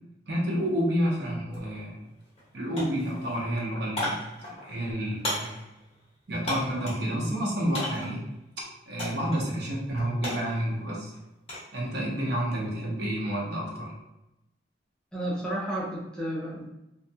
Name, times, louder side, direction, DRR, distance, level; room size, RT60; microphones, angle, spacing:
voice 1, 0.3-2.0 2.5-5.6 6.3-8.3 8.9-11.1 11.7-13.9, equal, 60° right, -3 dB, 0.7 m, -29 dB
sound 1, 1.5-1.6 2.0-2.5 2.7-7.1 7.7-8.2 9.0-9.4 9.7-11.7 12.1-12.5, left 1 dB, 30° left, 0.9 m, -35 dB
voice 2, 15.1-16.6, right 1 dB, 5° left, -5 dB, 0.4 m, -32 dB
2.4 x 2.2 x 2.6 m, 0.92 s
head